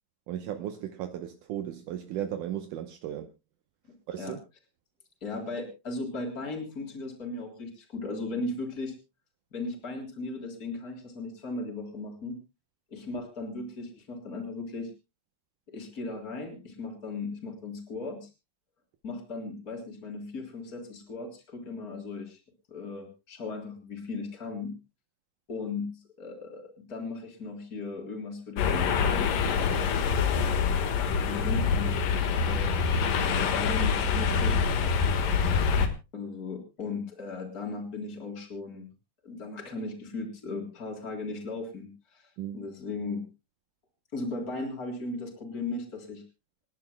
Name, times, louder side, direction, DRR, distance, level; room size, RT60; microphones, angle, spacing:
voice 1, 0.3-3.3 4.1-4.4 42.4-42.6, right 11 dB, 75° right, 2.4 m, -35 dB
voice 2, 5.2-8.9 9.5-12.4 12.9-14.9 15.7-18.3 19.0-22.4 22.7-24.8 25.5-29.3 29.6-29.9 31.2-32.8 33.2-34.6 36.1-38.9 39.2-43.3 44.1-46.2, left 3 dB, 25° left, 4.1 m, -37 dB
sound 1, 28.6-35.9, left 6 dB, 85° left, 3.3 m, -25 dB
28.0 x 11.0 x 2.2 m
omnidirectional pair, 3.8 m